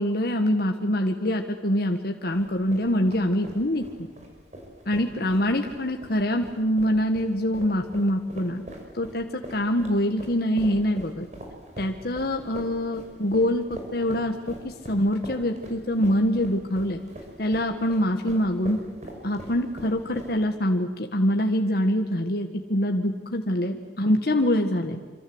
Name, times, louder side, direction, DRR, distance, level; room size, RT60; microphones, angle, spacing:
voice 1, 0.0-3.8 4.9-8.6 8.9-11.3 11.8-13.6 13.9-17.0 17.4-18.8 19.2-25.0, equal, 60° left, 3 dB, 1.6 m, -24 dB
sound 1, 2.3-20.6, right 1 dB, 40° right, 6.1 m, -42 dB
26.5 x 26.5 x 8.0 m, 1.3 s
head